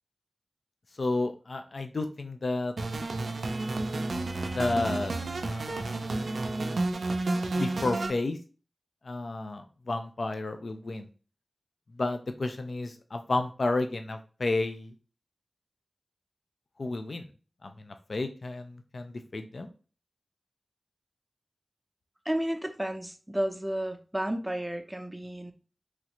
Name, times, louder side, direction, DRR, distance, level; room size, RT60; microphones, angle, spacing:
voice 1, 1.0-2.7 4.5-5.1 5.4-6.3 7.6-8.4 9.0-11.1 12.0-14.9 16.8-17.3 17.6-19.7, left 2 dB, 65° left, 7 dB, 0.4 m, -31 dB
sound 1, 2.8-8.1, right 2 dB, 80° right, 0.4 m, -31 dB
voice 2, 22.3-25.5, right 1 dB, 10° right, 7 dB, 0.5 m, -32 dB
3.1 x 2.4 x 2.9 m, 0.36 s
wide cardioid pair, 60°, 0 cm